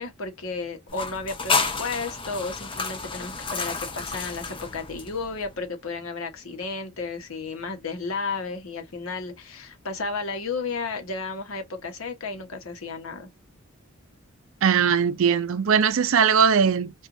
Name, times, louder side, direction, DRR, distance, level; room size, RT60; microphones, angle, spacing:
voice 1, 0.0-13.3, left 4 dB, 75° left, 1.0 m, -33 dB
sound 1, 0.9-5.5, left 4 dB, 25° left, 0.6 m, -30 dB
voice 2, 14.6-16.9, right 7 dB, 65° right, 0.4 m, -20 dB
4.4 x 2.4 x 2.5 m
head